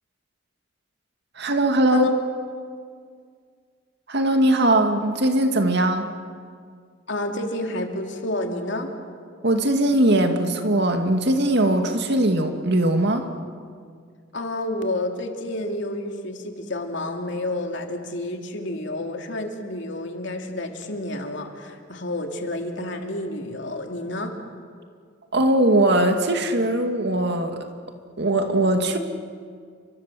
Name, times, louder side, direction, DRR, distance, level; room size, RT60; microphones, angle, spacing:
voice 1, 1.4-2.1 4.1-6.1 9.4-13.3 25.3-27.6 28.2-29.0, right 1 dB, 60° right, 5 dB, 2.3 m, -20 dB
voice 2, 1.9-2.2 7.1-8.9 14.3-24.4, left 1 dB, 65° left, 3 dB, 3.0 m, -29 dB
29.5 x 24.5 x 7.7 m, 2.1 s
head